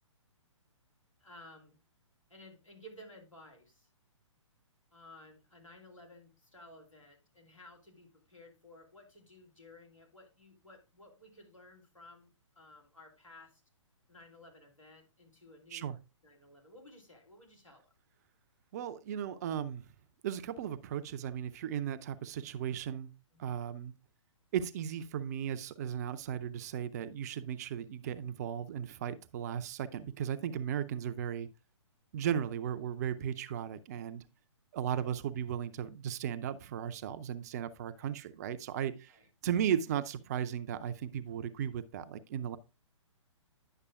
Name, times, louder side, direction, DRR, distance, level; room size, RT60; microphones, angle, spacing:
voice 1, 1.2-1.8 2.3-3.9 4.9-12.3 12.5-13.6 14.1-15.9 16.2-17.9 23.3-23.6 34.9-35.1 37.9-38.1 39.1-39.3, left 1 dB, 90° left, 2.9 m, -56 dB
voice 2, 18.7-19.8 20.2-23.1 23.4-23.9 24.5-31.5 32.1-34.2 34.7-39.2 39.4-42.6, right 9 dB, 30° right, 0.5 m, -36 dB
10.0 x 6.6 x 2.4 m
figure-of-eight pair, 125°, 16 cm